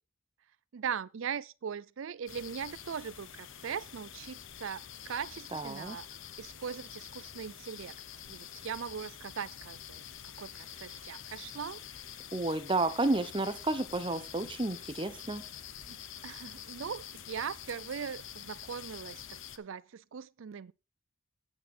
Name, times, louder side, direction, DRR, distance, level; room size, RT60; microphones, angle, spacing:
voice 1, 0.7-6.1 6.4-7.9 8.3-10.0 10.4-11.8 15.9-16.0 16.2-19.2 19.6-20.7, right 7 dB, 65° right, 0.4 m, -40 dB
sound 1, 2.3-19.6, left 9 dB, 60° left, 0.8 m, -47 dB
voice 2, 5.5-6.0 12.3-15.4, right 2 dB, 25° right, 0.8 m, -31 dB
9.6 x 8.8 x 4.3 m
head